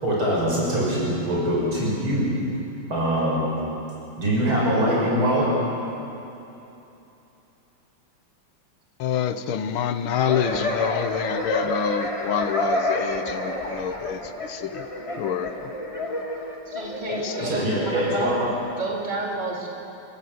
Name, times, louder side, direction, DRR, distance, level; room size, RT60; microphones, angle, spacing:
voice 1, 0.0-2.3 2.9-3.5 4.2-5.5 17.4-18.5, right 1 dB, 85° right, -5 dB, 7.0 m, -23 dB
voice 2, 9.0-14.9 15.2-15.7 17.1-17.5, left 8 dB, 85° left, 10 dB, 1.9 m, -27 dB
sound 1, 10.2-18.5, left 1 dB, 15° left, 2.0 m, -29 dB
voice 3, 16.7-18.3 18.8-19.7, right 2 dB, 20° right, -2 dB, 3.1 m, -30 dB
28.5 x 15.5 x 8.0 m, 2.9 s
omnidirectional pair, 2.2 m